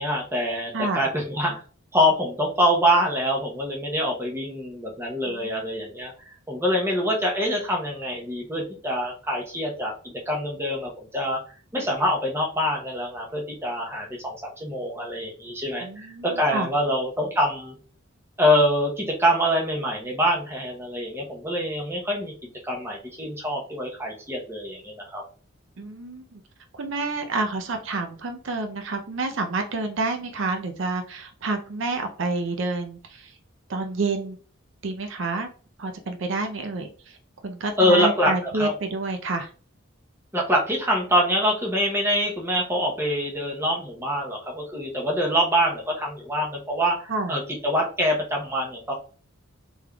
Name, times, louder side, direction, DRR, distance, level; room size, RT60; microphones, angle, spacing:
voice 1, 0.0-1.6 1.9-9.9 10.3-11.4 11.7-17.7 18.4-22.3 22.6-25.2 37.8-38.7 40.3-48.9, equal, 10° right, -1 dB, 0.7 m, -25 dB
voice 2, 0.7-1.1 5.3-5.6 15.8-16.7 25.8-26.4 26.7-33.4 33.7-34.4 34.8-35.5 35.8-37.2 37.4-39.5 47.1-47.3, right 3 dB, 65° right, 5 dB, 0.5 m, -29 dB
3.5 x 3.4 x 2.2 m, 0.39 s
head